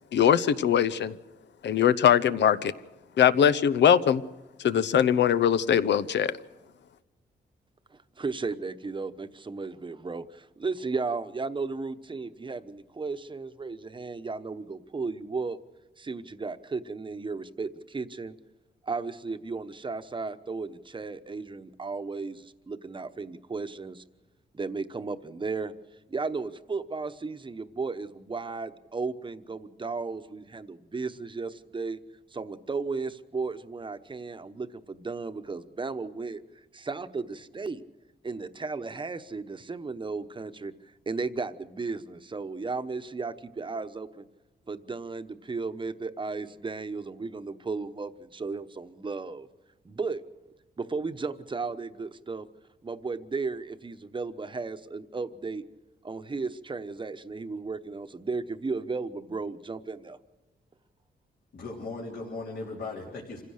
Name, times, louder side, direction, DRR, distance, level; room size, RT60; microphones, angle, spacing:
voice 1, 0.1-1.2 1.6-2.7 3.2-4.2 4.6-6.3, left 9 dB, 85° left, 14 dB, 0.8 m, -21 dB
voice 2, 7.9-15.6 16.0-18.3 18.8-24.0 24.5-25.7 26.1-32.0 32.3-36.4 36.7-37.8 38.2-40.7 41.1-44.2 44.7-49.5 49.8-50.2 50.8-52.5 52.8-55.6 56.0-60.2, right 4 dB, 25° right, 10 dB, 1.0 m, -35 dB
voice 3, 61.5-63.4, left 3 dB, 70° left, -3 dB, 3.4 m, -37 dB
26.5 x 16.0 x 6.5 m, 1.1 s
cardioid pair, 105°, 18 cm